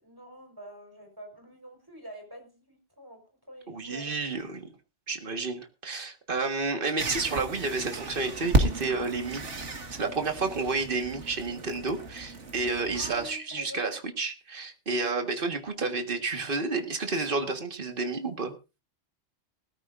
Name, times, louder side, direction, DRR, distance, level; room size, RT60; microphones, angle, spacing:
voice 1, 0.0-3.2 3.5-4.1 12.9-14.0, equal, 20° right, 3 dB, 4.5 m, -46 dB
voice 2, 3.7-4.7 5.1-9.5 9.9-18.6, right 3 dB, 50° right, 6 dB, 1.8 m, -30 dB
sound 1, 7.0-13.3, right 2 dB, 75° right, 2.1 m, -32 dB
19.5 x 13.5 x 2.6 m, 0.30 s
omnidirectional pair, 1.2 m